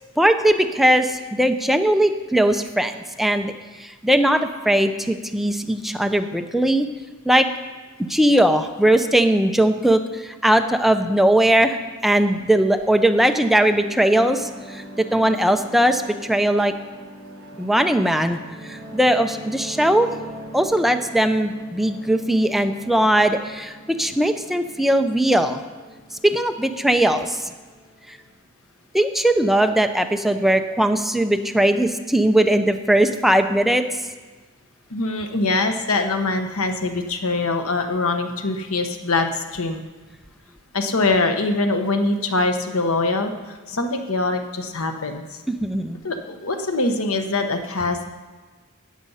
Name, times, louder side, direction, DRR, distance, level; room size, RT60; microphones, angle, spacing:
voice 1, 0.2-2.9 3.2-3.5 3.8-6.9 7.2-7.5 8.1-16.7 17.6-18.4 18.6-20.1 20.5-25.6 26.2-27.4 28.1-28.2 28.9-33.8 45.5-46.0, right 1 dB, ahead, 6 dB, 0.6 m, -19 dB
sound 1, 12.9-28.3, equal, 50° right, 5.2 m, -42 dB
voice 2, 34.9-39.8 40.7-45.2 46.0-48.1, left 3 dB, 90° left, 6 dB, 1.2 m, -23 dB
14.0 x 9.4 x 5.6 m, 1.3 s
head